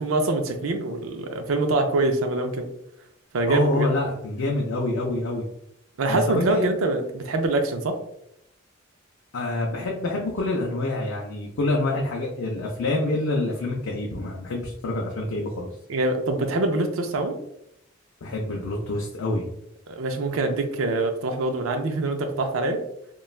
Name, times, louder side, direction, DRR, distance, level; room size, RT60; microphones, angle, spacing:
voice 1, 0.0-2.7 3.3-3.9 6.0-8.0 15.9-17.4 19.9-22.8, right 2 dB, 75° right, 5 dB, 0.4 m, -24 dB
voice 2, 3.5-5.4 6.1-6.7 9.3-15.7 18.2-19.4, left 2 dB, 70° left, -2 dB, 0.4 m, -26 dB
3.0 x 2.2 x 2.4 m, 0.77 s
head